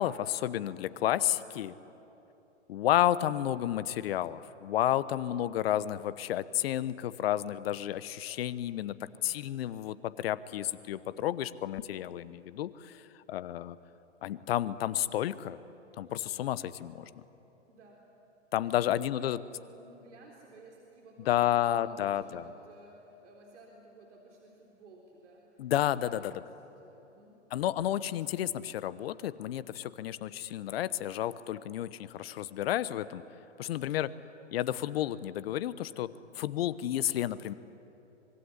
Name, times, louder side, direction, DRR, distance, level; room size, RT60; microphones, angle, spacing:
voice 1, 0.0-1.8 2.7-13.8 14.2-15.6 16.0-17.2 18.5-19.4 21.3-22.4 25.6-26.2 27.5-33.2 33.6-34.1 34.5-36.1 36.3-37.5, left 12 dB, 50° left, 16 dB, 1.0 m, -31 dB
voice 2, 17.7-18.0 18.6-27.4, right 2 dB, 70° right, -1 dB, 3.9 m, -55 dB
25.0 x 22.0 x 9.9 m, 3.0 s
hypercardioid pair, 120°, 37 cm